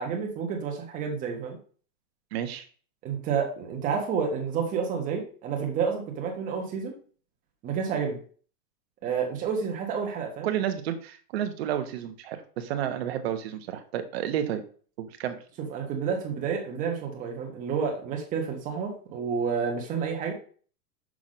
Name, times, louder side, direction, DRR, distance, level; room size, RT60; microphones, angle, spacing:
voice 1, 0.0-1.6 3.0-7.0 7.6-8.2 9.0-10.5 15.7-20.3, right 6 dB, 15° right, 2 dB, 1.2 m, -30 dB
voice 2, 2.3-2.6 10.4-14.6 15.0-15.4, right 10 dB, 40° right, 7 dB, 1.0 m, -31 dB
6.2 x 5.7 x 5.0 m, 0.43 s
supercardioid pair, 170°, 47 cm